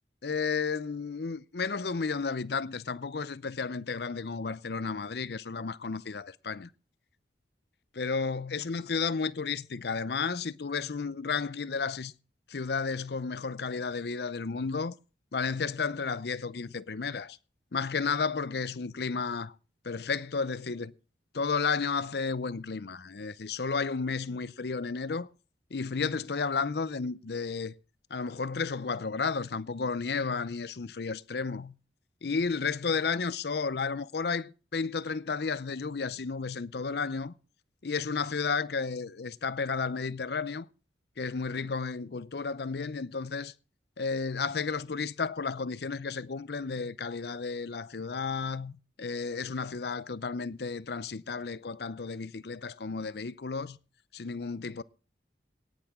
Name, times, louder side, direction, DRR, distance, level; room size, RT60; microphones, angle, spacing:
voice 1, 0.2-6.7 7.9-12.1 12.5-14.9 15.3-17.4 17.7-19.5 19.8-20.9 21.3-25.3 25.7-27.7 28.1-31.7 32.2-37.3 37.8-40.7 41.2-43.5 44.0-48.7 49.0-53.8 54.1-54.8, left 5 dB, 65° left, 0.6 m, -32 dB
18.0 x 10.5 x 3.7 m
head